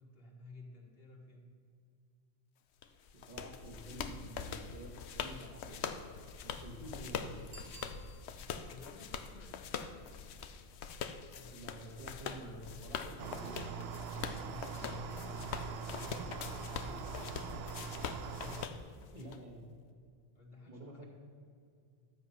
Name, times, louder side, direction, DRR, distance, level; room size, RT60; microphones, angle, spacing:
voice 1, 0.0-1.4 8.6-10.1 11.3-12.5 14.3-17.5 18.3-18.7 19.1-19.4 20.3-21.1, left 2 dB, 65° left, -1 dB, 2.1 m, -55 dB
sound 1, 2.8-19.4, left 7 dB, 85° left, 0.9 m, -43 dB
voice 2, 3.1-6.0 6.4-7.4 11.4-13.7 14.2-14.5 16.8-17.0 19.1-19.6 20.7-21.1, right 1 dB, 40° right, 0 dB, 1.6 m, -49 dB
Bicycle bell, 7.5-8.7 14.1-14.2, right 1 dB, 60° right, 1.8 m, -55 dB
sound 2, 13.2-18.7, right 5 dB, 75° right, 0.8 m, -43 dB
12.0 x 7.8 x 5.6 m, 2.3 s
omnidirectional pair, 1.1 m